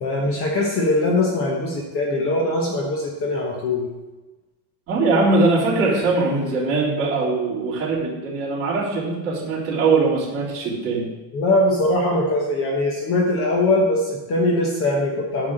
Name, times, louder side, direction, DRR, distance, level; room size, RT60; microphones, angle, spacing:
voice 1, 0.0-3.8 11.3-15.5, left 2 dB, 30° left, -1 dB, 1.1 m, -21 dB
voice 2, 4.9-11.1, right 3 dB, 30° right, -8 dB, 3.7 m, -21 dB
9.8 x 4.8 x 7.7 m, 1.1 s
cardioid pair, 175°, 47 cm